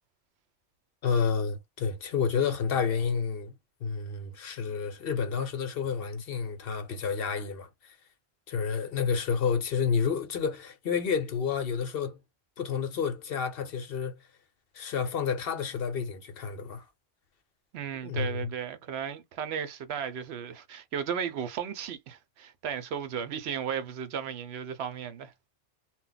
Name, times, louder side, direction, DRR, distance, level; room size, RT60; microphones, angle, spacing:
voice 1, 1.0-3.5 3.8-7.9 8.5-12.2 12.6-14.2 14.7-16.8 18.0-18.5, left 6 dB, 65° left, 0.9 m, -30 dB
voice 2, 17.7-25.3, right 8 dB, 75° right, 0.8 m, -35 dB
2.2 x 2.2 x 3.8 m
omnidirectional pair, 1.1 m